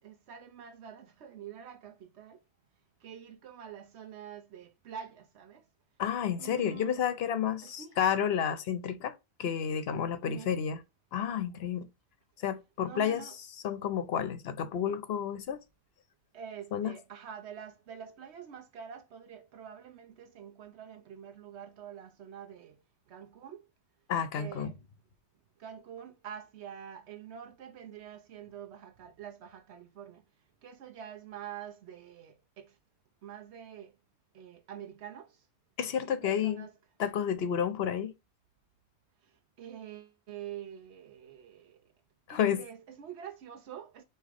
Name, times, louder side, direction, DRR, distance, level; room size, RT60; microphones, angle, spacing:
voice 1, 0.0-2.4 3.0-5.6 6.4-7.1 7.6-8.0 10.2-10.6 12.8-13.4 16.3-22.8 23.1-23.6 24.3-24.7 25.6-30.2 30.6-32.7 33.2-33.9 34.3-35.4 36.0-36.7 39.6-41.8 42.3-44.0, right 8 dB, 85° right, 1.0 m, -46 dB
voice 2, 6.0-10.8 11.1-11.9 12.4-13.2 13.6-15.6 16.7-16.9 24.1-24.7 35.8-36.7 37.0-38.1 42.3-42.6, left 8 dB, 70° left, 1.0 m, -31 dB
4.1 x 3.6 x 3.4 m
omnidirectional pair, 1.1 m